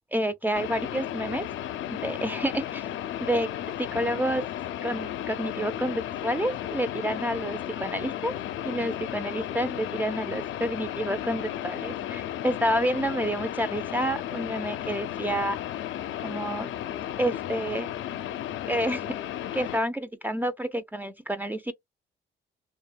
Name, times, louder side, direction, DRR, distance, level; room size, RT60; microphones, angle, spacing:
voice 1, 0.1-1.5 1.9-2.9 3.2-3.5 3.8-4.4 4.8-8.4 8.6-15.6 16.2-16.7 17.2-17.9 18.7-19.2 19.5-21.7, right 1 dB, 10° right, 0.4 m, -29 dB
sound 1, 0.5-19.8, left 11 dB, 75° left, 0.4 m, -34 dB
2.7 x 2.1 x 2.3 m
cardioid pair, 90°, 20 cm